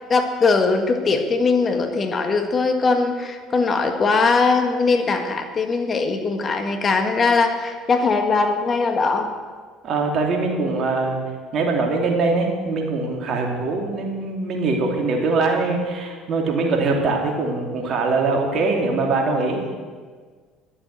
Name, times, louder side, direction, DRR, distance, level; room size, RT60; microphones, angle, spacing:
voice 1, 0.1-9.3, left 4 dB, 35° left, 6 dB, 1.7 m, -20 dB
voice 2, 9.8-11.2 11.5-19.6, right 3 dB, 50° right, 1 dB, 2.9 m, -22 dB
12.0 x 7.8 x 8.1 m, 1.6 s
hypercardioid pair, 65°, 0 cm